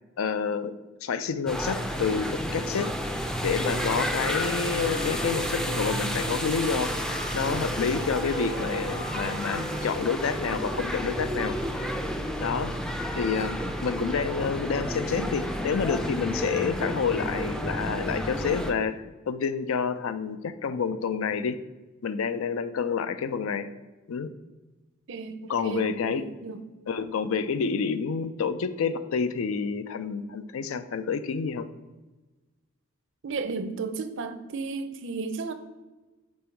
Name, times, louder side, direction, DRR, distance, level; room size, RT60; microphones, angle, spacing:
voice 1, 0.2-0.8 1.0-2.9 3.4-6.9 7.3-11.5 12.4-12.7 13.1-21.6 22.0-23.7 24.1-24.3 25.5-26.2 26.9-31.7, left 6 dB, 80° left, 0.4 m, -28 dB
sound 1, 1.5-18.7, equal, 5° left, 0.4 m, -31 dB
sound 2, 3.5-9.9, equal, 55° left, 1.9 m, -39 dB
voice 2, 25.1-26.6 33.2-35.5, right 4 dB, 60° right, 0.5 m, -34 dB
5.4 x 4.2 x 4.4 m
head